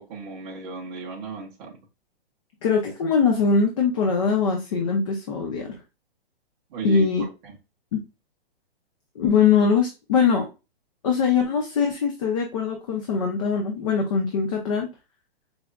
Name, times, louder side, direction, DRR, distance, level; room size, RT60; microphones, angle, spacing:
voice 1, 0.0-1.8 6.7-7.6, right 5 dB, 20° right, 0.6 m, -35 dB
voice 2, 2.6-5.8 6.8-7.2 7.9-8.0 9.2-10.5 11.0-14.9, left 5 dB, 35° left, 0.5 m, -22 dB
4.8 x 2.3 x 2.2 m
hypercardioid pair, 160°, 30 cm